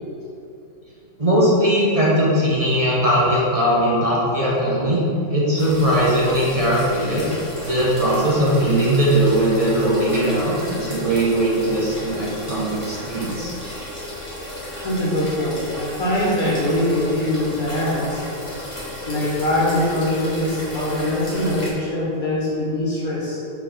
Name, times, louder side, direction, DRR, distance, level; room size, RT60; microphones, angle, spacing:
voice 1, 1.2-5.0 5.3-7.2 7.7-13.5, right 1 dB, 25° right, -7 dB, 1.2 m, -19 dB
sound 1, 5.6-21.7, left 1 dB, 20° left, 1.6 m, -34 dB
voice 2, 14.8-18.2 19.1-23.4, left 1 dB, 80° left, -7 dB, 2.4 m, -22 dB
4.9 x 4.8 x 5.9 m, 2.6 s
omnidirectional pair, 1.5 m